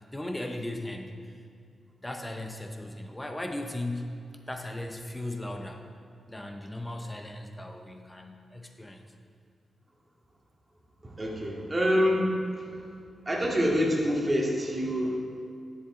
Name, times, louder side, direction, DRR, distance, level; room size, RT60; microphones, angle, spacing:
voice 1, 0.1-1.2 2.0-4.2 4.5-5.9 6.3-9.1, left 1 dB, 15° left, 5 dB, 0.8 m, -37 dB
voice 2, 11.0-12.8 13.3-15.2, equal, 30° right, -3 dB, 2.3 m, -26 dB
10.5 x 7.2 x 3.9 m, 2.3 s
supercardioid pair, 45°, 0 cm